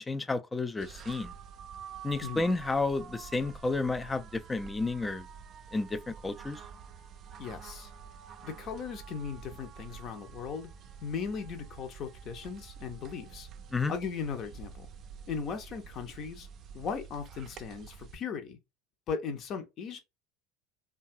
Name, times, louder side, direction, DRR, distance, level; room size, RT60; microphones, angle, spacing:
voice 1, 0.0-1.3 2.0-5.3 5.7-6.6 13.7-13.9, left 3 dB, 15° left, 0.4 m, -31 dB
sound 1, 0.8-18.1, right 7 dB, 45° right, 0.4 m, -48 dB
voice 2, 7.4-7.9 8.4-10.7 11.0-13.5 13.9-14.9 15.3-16.5 16.7-18.6 19.1-20.0, left 6 dB, 45° left, 0.7 m, -37 dB
2.7 x 2.3 x 2.5 m
hypercardioid pair, 85°, 0 cm